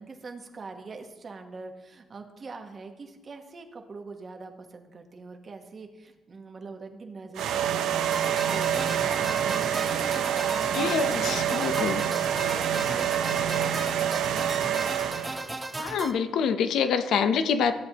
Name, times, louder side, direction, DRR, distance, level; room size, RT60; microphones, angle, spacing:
voice 1, 0.0-14.8, right 4 dB, 40° right, 4 dB, 1.2 m, -43 dB
sound 1, 7.4-15.5, right 9 dB, 80° right, 0.5 m, -27 dB
sound 2, 8.1-16.1, right 2 dB, 20° right, 0.7 m, -35 dB
voice 2, 10.7-12.0 15.8-17.7, left 6 dB, 75° left, 9 dB, 0.6 m, -26 dB
13.5 x 7.6 x 2.9 m, 1.1 s
cardioid pair, 90°, 0 cm